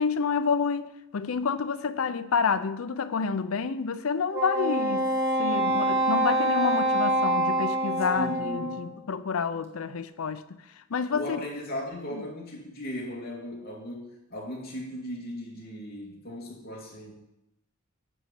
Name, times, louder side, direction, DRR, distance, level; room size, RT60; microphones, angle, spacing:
voice 1, 0.0-5.1 5.4-10.4 10.9-11.4 12.1-12.2, left 5 dB, 80° left, 0.5 m, -29 dB
Wind instrument woodwind instrument, 4.3-8.9, right 1 dB, 15° right, 1.4 m, -26 dB
voice 2, 8.1-8.9 11.1-17.1, left 1 dB, 50° left, 2.5 m, -37 dB
10.0 x 4.1 x 7.5 m
head